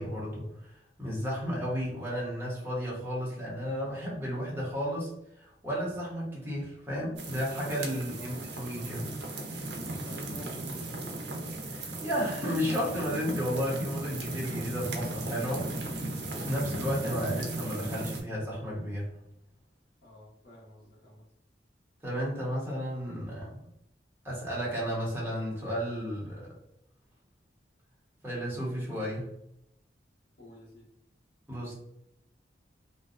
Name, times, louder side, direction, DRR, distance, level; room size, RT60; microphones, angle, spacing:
voice 1, 0.0-5.1 5.4-9.1 11.6-19.1 22.0-23.7 24.2-26.5 28.2-29.3 31.5-31.7, equal, 15° right, -6 dB, 0.8 m, -33 dB
sound 1, 7.2-18.2, right 2 dB, 70° right, 0.5 m, -36 dB
voice 2, 8.0-8.5 9.8-11.0 20.0-21.3 30.4-30.9, equal, 75° left, -5 dB, 0.9 m, -50 dB
2.5 x 2.2 x 2.3 m, 0.77 s
head